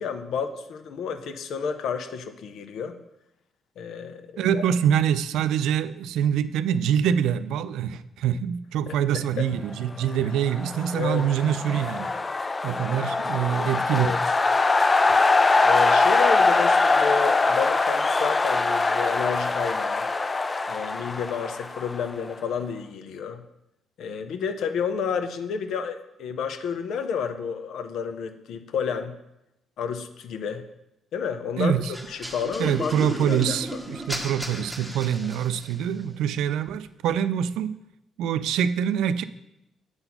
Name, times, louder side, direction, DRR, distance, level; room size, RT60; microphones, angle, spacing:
voice 1, 0.0-3.0 3.8-4.6 8.9-9.5 10.9-11.3 13.9-14.2 15.6-20.1 20.7-23.4 24.0-29.2 29.8-30.7 31.1-31.7 32.1-33.8, left 6 dB, 75° left, 9 dB, 0.6 m, -30 dB
voice 2, 4.4-12.1 12.6-14.1 31.6-31.9 32.6-37.7 38.2-39.2, right 9 dB, 85° right, 14 dB, 0.3 m, -25 dB
sound 1, 10.4-22.3, left 3 dB, 25° left, 0.4 m, -23 dB
sound 2, 31.9-35.9, right 1 dB, 5° right, 1.1 m, -35 dB
7.8 x 4.0 x 5.8 m, 0.88 s
cardioid pair, 90°, 0 cm